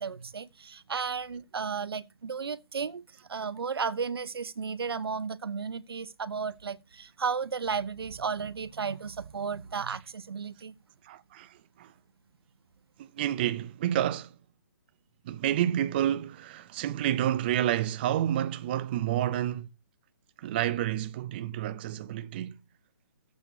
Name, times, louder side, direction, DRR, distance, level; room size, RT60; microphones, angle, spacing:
voice 1, 0.0-3.0 3.3-10.7, right 5 dB, 80° right, 0.9 m, -34 dB
voice 2, 11.0-11.9 13.0-14.3 15.2-19.7 20.4-22.6, right 11 dB, 25° right, 0.5 m, -29 dB
14.5 x 8.1 x 2.8 m
hypercardioid pair, 160°, 13 cm